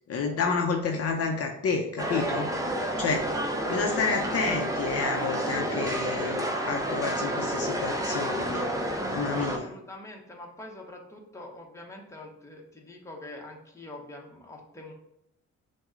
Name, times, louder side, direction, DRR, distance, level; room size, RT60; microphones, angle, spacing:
voice 1, 0.1-2.5 3.0-3.3 3.7-8.7 9.1-9.7, left 4 dB, 50° left, 3 dB, 0.7 m, -29 dB
sound 1, 2.0-9.6, right 1 dB, 10° right, 0.6 m, -30 dB
voice 2, 9.4-14.9, left 2 dB, 10° left, 0 dB, 1.0 m, -44 dB
6.0 x 2.3 x 3.7 m, 0.79 s
cardioid pair, 90°, 30 cm